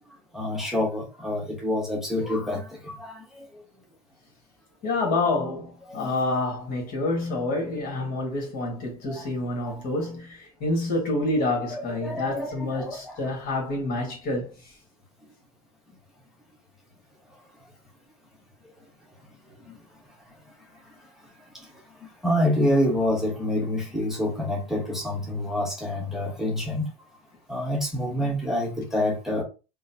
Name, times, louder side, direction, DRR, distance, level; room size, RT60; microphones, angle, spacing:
voice 1, 0.3-3.4 6.0-6.1 9.1-9.3 9.6-9.8 11.7-13.2 19.7-19.8 21.5-21.7 22.0-26.9 27.5-29.4, left 1 dB, ahead, 1.0 m, -27 dB
voice 2, 4.8-14.5, left 2 dB, 50° left, 1.6 m, -28 dB
3.8 x 2.1 x 2.8 m
hypercardioid pair, 95°, 19 cm